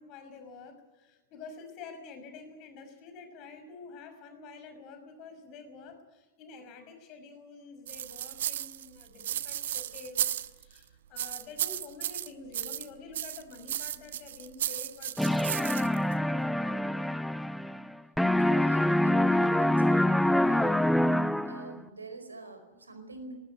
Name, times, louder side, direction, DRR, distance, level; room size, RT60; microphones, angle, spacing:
voice 1, 0.0-17.1, left 4 dB, 40° left, 8 dB, 5.7 m, -48 dB
sound 1, 7.9-10.8 11.2-12.9 13.1-16.1, right 11 dB, 60° right, 1.0 m, -34 dB
sound 2, 15.2-17.9 18.2-21.8, left 1 dB, ahead, 0.8 m, -25 dB
voice 2, 18.4-20.8 21.4-23.3, right 2 dB, 80° right, 7 dB, 4.7 m, -45 dB
20.0 x 19.5 x 9.4 m, 1.2 s
figure-of-eight pair, 90°, 0 cm